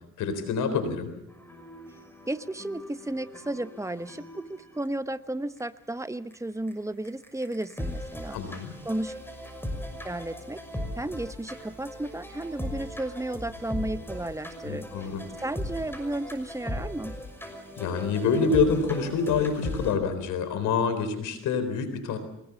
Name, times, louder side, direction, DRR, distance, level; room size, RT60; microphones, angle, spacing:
voice 1, 0.2-1.1 8.3-8.7 14.6-15.2 17.8-22.2, left 5 dB, 85° left, 10 dB, 3.9 m, -26 dB
sound 1, 1.3-4.9 5.6-5.7 6.3-6.4 6.7-6.8 7.0-19.9, left 1 dB, 5° left, 6.0 m, -38 dB
voice 2, 2.3-8.4 8.8-9.1 10.0-10.6 11.0-14.9 15.4-17.2, right 1 dB, 10° right, 12 dB, 1.0 m, -33 dB
23.5 x 20.5 x 7.1 m, 0.77 s
cardioid pair, 90°, 30 cm